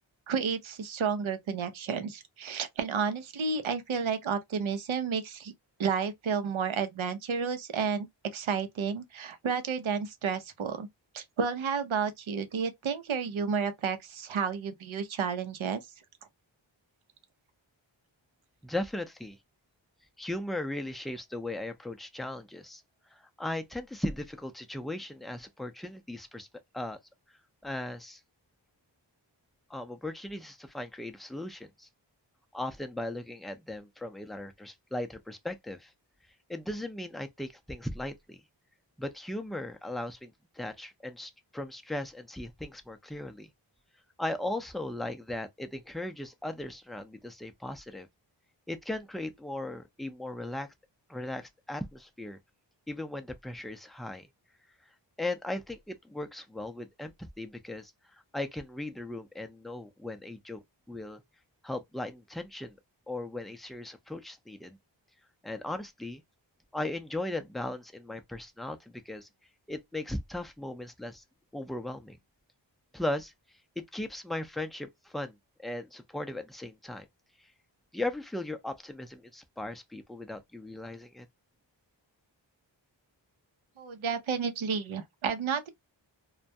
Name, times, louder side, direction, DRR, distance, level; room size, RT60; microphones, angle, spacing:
voice 1, 0.3-5.5 5.8-8.1 8.3-10.9 11.1-15.8 83.8-85.7, right 6 dB, 85° right, 0.7 m, -31 dB
voice 2, 18.6-19.4 20.2-22.8 23.1-26.5 26.7-27.0 27.6-28.2 29.7-31.9 32.5-35.9 36.5-38.4 39.0-43.5 44.2-48.1 48.7-50.7 51.1-52.4 52.9-54.3 55.2-57.9 58.3-60.6 60.9-61.2 61.6-62.7 63.1-64.8 65.4-66.2 66.7-69.3 69.7-71.2 71.5-72.2 72.9-73.3 73.8-77.1 77.9-81.3, left 1 dB, ahead, 0.5 m, -37 dB
2.3 x 2.1 x 2.6 m
wide cardioid pair, 55°, 47 cm